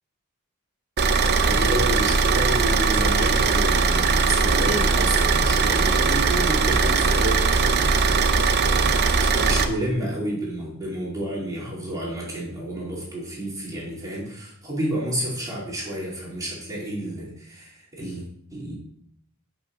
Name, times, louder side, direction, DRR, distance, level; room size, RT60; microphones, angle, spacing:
Car / Idling, 1.0-9.6, right 4 dB, 50° right, 0.7 m, -20 dB
voice 1, 1.4-18.7, right 1 dB, 15° right, -6 dB, 2.7 m, -30 dB
6.0 x 5.8 x 6.5 m, 0.70 s
head